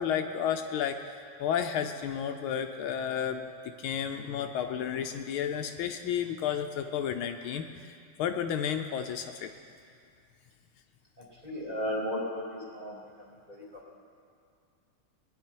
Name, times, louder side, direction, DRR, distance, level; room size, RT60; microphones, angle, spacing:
voice 1, 0.0-3.5 3.8-7.9 8.2-9.5, left 8 dB, 80° left, 6 dB, 1.4 m, -32 dB
voice 2, 11.4-13.0 13.5-14.0, equal, 20° right, -5 dB, 2.6 m, -35 dB
20.0 x 10.0 x 4.5 m, 2.4 s
omnidirectional pair, 2.4 m